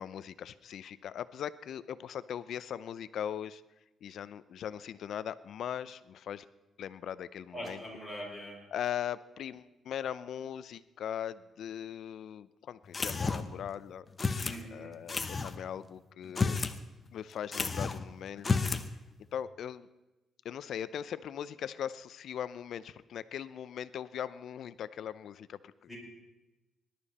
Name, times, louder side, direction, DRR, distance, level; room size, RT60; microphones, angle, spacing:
voice 1, 0.0-3.6 4.0-6.5 6.8-7.8 8.7-16.6 17.1-18.6 19.3-19.9 20.4-25.7, left 9 dB, 70° left, 16 dB, 0.6 m, -40 dB
voice 2, 7.5-8.6 14.4-14.9 25.9-26.0, equal, 5° left, -4 dB, 5.7 m, -42 dB
sound 1, 12.9-13.6 14.2-14.6 15.1-15.5 16.2-16.8 17.1-17.2 17.5-18.0 18.4-18.9, left 4 dB, 30° left, 0.9 m, -31 dB
19.5 x 12.0 x 4.2 m, 1.0 s
cardioid pair, 110°, 0 cm